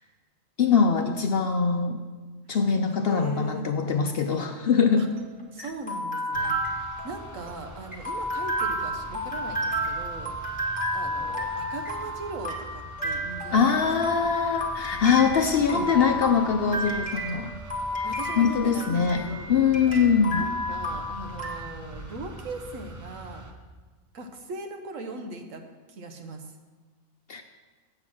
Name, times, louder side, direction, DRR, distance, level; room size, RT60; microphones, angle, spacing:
voice 1, 0.6-2.0 2.5-5.1 13.5-17.5 18.4-20.5 27.3-27.4, left 6 dB, 60° left, 6 dB, 0.7 m, -23 dB
voice 2, 3.1-3.7 5.0-5.1 5.5-6.5 7.0-10.3 10.9-13.6 15.7-16.1 18.0-19.6 20.4-23.5 24.1-25.6 25.9-26.4, right 3 dB, 70° right, 5 dB, 1.3 m, -39 dB
sound 1, 4.9-21.6, equal, 5° left, 1.2 m, -32 dB
sound 2, 6.3-23.5, right 1 dB, 15° right, 0.6 m, -44 dB
8.1 x 7.7 x 6.0 m, 1.3 s
omnidirectional pair, 1.4 m